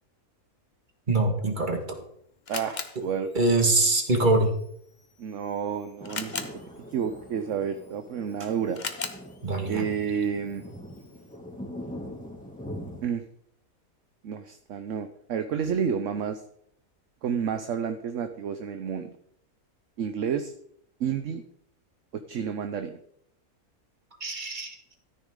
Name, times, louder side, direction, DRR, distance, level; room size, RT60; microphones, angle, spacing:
voice 1, 1.1-1.8 3.3-4.5 9.4-9.9 24.2-24.8, right 2 dB, 35° right, 4 dB, 1.9 m, -23 dB
Camera, 1.5-11.4, left 5 dB, 35° left, 0.9 m, -42 dB
voice 2, 2.5-3.3 5.2-6.5 6.9-8.8 9.7-10.6 13.0-13.2 14.2-16.4 17.2-19.1 20.0-20.5 21.0-21.4 22.3-23.0, right 7 dB, 60° right, 8 dB, 1.0 m, -30 dB
sound 1, 6.0-13.1, equal, 5° left, 2.2 m, -42 dB
14.0 x 9.6 x 3.7 m, 0.67 s
omnidirectional pair, 1.5 m